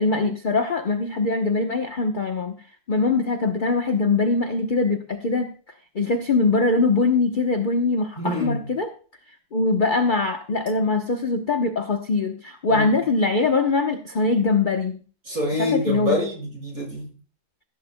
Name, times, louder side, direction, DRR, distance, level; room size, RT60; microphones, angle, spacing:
voice 1, 0.0-2.6 2.9-5.5 5.9-8.9 9.5-15.0 15.6-16.1, left 3 dB, 40° left, 4 dB, 0.8 m, -22 dB
voice 2, 8.2-8.7 12.7-12.9 15.3-17.1, equal, 45° right, -1 dB, 5.7 m, -26 dB
15.5 x 14.0 x 2.2 m, 0.40 s
omnidirectional pair, 2.1 m